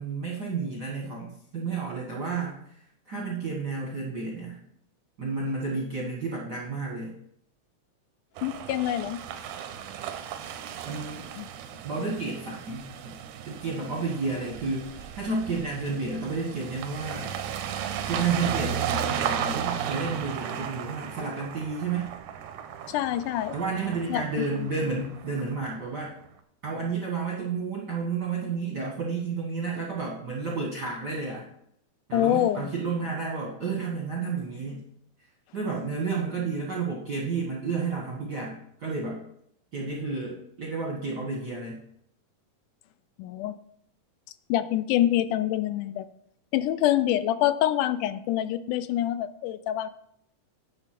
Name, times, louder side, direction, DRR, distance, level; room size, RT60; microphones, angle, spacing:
voice 1, 0.0-4.6 5.2-7.1 10.9-11.2 11.8-13.2 13.5-17.3 18.1-22.1 23.5-26.1 26.6-31.4 32.1-34.8 35.5-39.2 39.7-41.8, right 4 dB, 55° right, -2 dB, 1.2 m, -31 dB
voice 2, 8.4-9.2 11.4-11.5 22.9-23.5 24.1-24.2 24.6-24.7 32.1-32.7 43.2-43.6 44.5-46.1 46.5-49.9, left 12 dB, 85° left, 13 dB, 2.1 m, -26 dB
sound 1, 8.4-26.0, right 8 dB, 85° right, 2.2 m, -35 dB
10.0 x 3.9 x 5.8 m, 0.71 s
omnidirectional pair, 3.6 m